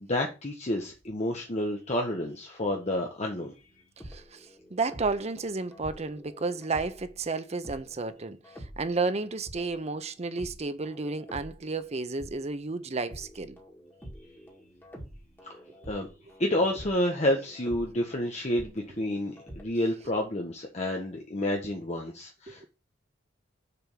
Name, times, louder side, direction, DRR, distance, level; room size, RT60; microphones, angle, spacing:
voice 1, 0.0-3.5 15.5-15.6 15.9-16.1 16.4-22.7, left 1 dB, 35° left, 1.1 m, -29 dB
sound 1, 3.6-7.2 7.6-12.6 13.0-19.7, equal, 10° left, 2.1 m, -48 dB
voice 2, 4.1-8.4 8.8-13.6 22.5-22.7, right 3 dB, 35° right, 0.7 m, -32 dB
6.8 x 3.5 x 6.1 m
head